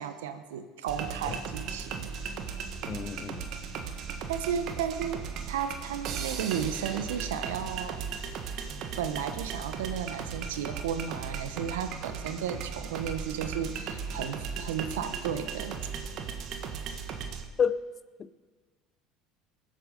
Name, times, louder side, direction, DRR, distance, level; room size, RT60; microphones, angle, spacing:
voice 1, 0.0-2.1 4.3-8.1 9.0-15.8, right 8 dB, 85° right, 1.0 m, -34 dB
sound 1, 0.9-17.4, right 6 dB, 60° right, 1.4 m, -37 dB
voice 2, 2.9-3.5 17.6-17.8 18.2-18.3, left 7 dB, 35° left, 0.7 m, -29 dB
20.5 x 8.0 x 5.2 m
hypercardioid pair, 80°, 0 cm